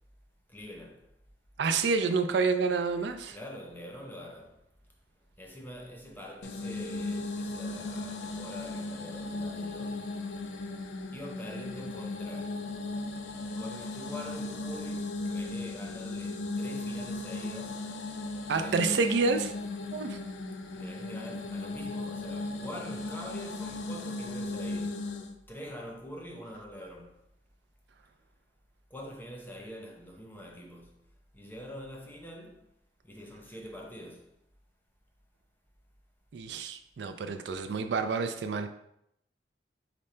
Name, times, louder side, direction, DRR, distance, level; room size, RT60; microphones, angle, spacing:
voice 1, 0.5-1.1 3.3-4.6 5.4-10.1 11.1-12.6 13.5-17.9 18.5-19.1 20.7-25.0 25.5-27.2 28.9-30.9 31.3-32.7 33.0-34.3, equal, 10° left, 0.6 m, -44 dB
voice 2, 1.6-3.4 18.5-19.5 19.9-20.2 36.3-38.7, right 4 dB, 75° right, 0.4 m, -28 dB
sound 1, 6.4-25.3, left 2 dB, 80° left, 0.4 m, -37 dB
5.0 x 2.1 x 4.2 m
head